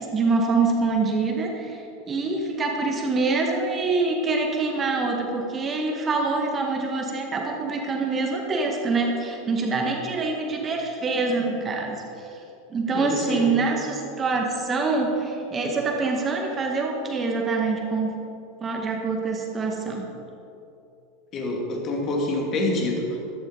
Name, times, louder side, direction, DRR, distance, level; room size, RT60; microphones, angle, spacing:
voice 1, 0.0-12.3 12.7-18.2 18.6-20.1, right 3 dB, 25° right, 1 dB, 1.7 m, -25 dB
voice 2, 12.9-13.6 21.3-23.3, left 2 dB, 35° left, 0 dB, 2.6 m, -27 dB
14.0 x 12.5 x 4.1 m, 2.9 s
figure-of-eight pair, 80°, 0 cm